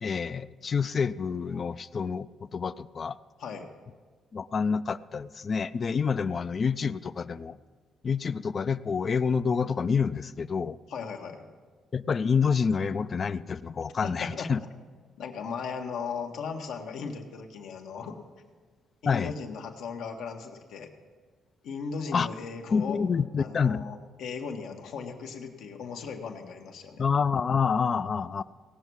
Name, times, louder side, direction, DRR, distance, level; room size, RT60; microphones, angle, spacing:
voice 1, 0.0-2.3 2.5-3.2 4.3-7.6 8.0-10.8 11.9-14.6 19.1-19.3 22.1-22.3 22.7-23.9 27.0-28.4, left 6 dB, 45° left, 14 dB, 0.4 m, -27 dB
voice 2, 10.9-11.4 14.0-14.5 15.2-18.2 19.0-20.9 21.6-23.0 23.4-27.0, left 5 dB, 80° left, 3 dB, 1.4 m, -37 dB
18.0 x 7.1 x 6.2 m, 1.5 s
cardioid pair, 90°, 0 cm